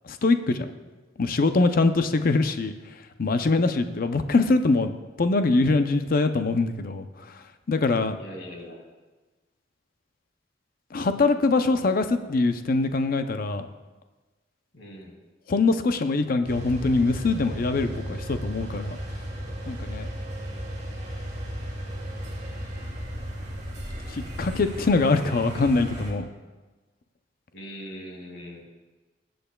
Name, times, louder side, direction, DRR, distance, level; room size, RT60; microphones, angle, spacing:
voice 1, 0.0-0.7 1.2-2.7 3.2-4.9 5.2-7.1 7.7-8.2 10.9-13.7 15.5-19.0 19.7-20.1 24.1-26.3, left 3 dB, 50° left, 9 dB, 0.6 m, -23 dB
voice 2, 8.2-8.8 14.7-15.2 27.5-28.6, equal, 80° left, 1 dB, 2.1 m, -41 dB
sound 1, 16.5-26.1, equal, 40° right, 3.0 m, -35 dB
20.0 x 7.8 x 2.3 m, 1.2 s
head